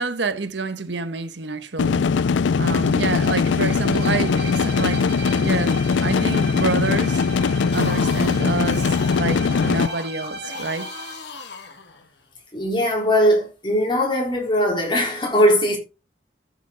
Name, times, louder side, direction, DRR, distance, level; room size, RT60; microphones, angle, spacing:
voice 1, 0.0-2.1 2.6-5.1 5.3-5.7 6.0-7.2 7.7-10.9, right 3 dB, 75° right, 1.1 m, -27 dB
sound 1, 1.8-9.9, left 5 dB, 85° left, 0.4 m, -20 dB
Bowed string instrument, 2.6-11.3, right 2 dB, 60° right, 1.8 m, -37 dB
sound 2, 7.7-12.3, left 3 dB, 65° left, 1.9 m, -38 dB
voice 2, 12.5-15.8, equal, 25° left, 3.8 m, -20 dB
13.5 x 7.3 x 3.8 m
head